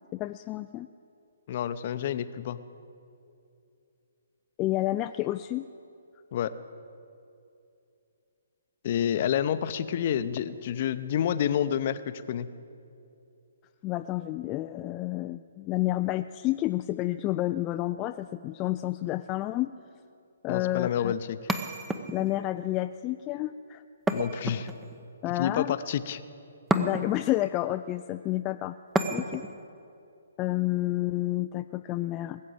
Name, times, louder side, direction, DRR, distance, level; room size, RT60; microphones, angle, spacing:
voice 1, 0.1-0.9 4.6-5.6 13.8-19.7 20.4-21.1 22.1-23.8 25.2-25.7 26.7-28.8 29.1-29.4 30.4-32.4, left 16 dB, 25° left, 8 dB, 0.3 m, -30 dB
voice 2, 1.5-2.6 6.3-6.5 8.8-12.5 20.5-21.4 24.1-24.7 25.4-26.2, left 9 dB, 45° left, 12 dB, 0.7 m, -29 dB
sound 1, 21.5-22.4 24.1-25.0 26.7-27.3 28.9-29.6, right 2 dB, 10° right, 0.7 m, -30 dB
20.0 x 7.6 x 8.6 m, 2.6 s
figure-of-eight pair, 135°, 0 cm